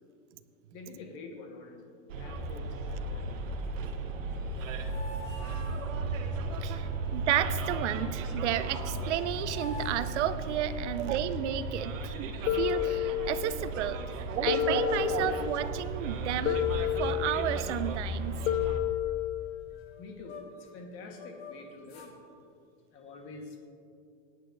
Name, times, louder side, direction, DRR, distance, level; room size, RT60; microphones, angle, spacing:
voice 1, 0.7-3.3 12.6-12.7 18.4-18.8 20.0-22.1 22.9-23.7, left 3 dB, 30° left, 3 dB, 1.3 m, -47 dB
Bus, 2.1-18.8, right 3 dB, 85° right, 1.3 m, -35 dB
sound 1, 4.2-6.3 8.4-8.5 8.8-11.0 12.4-13.2 13.7-13.8 14.1-15.2 15.5-15.9 16.4-17.1 17.4-17.5 17.8-20.7 21.1-22.2, left 2 dB, 50° left, 1.9 m, -49 dB
voice 2, 6.6-14.0 14.4-18.4, right 11 dB, 65° right, 13 dB, 0.7 m, -32 dB
sound 2, 12.5-13.6 14.5-15.6 16.5-17.6 18.5-19.6, left 15 dB, 75° left, 0.7 m, -30 dB
18.5 x 9.9 x 2.6 m, 2.5 s
supercardioid pair, 165°, 38 cm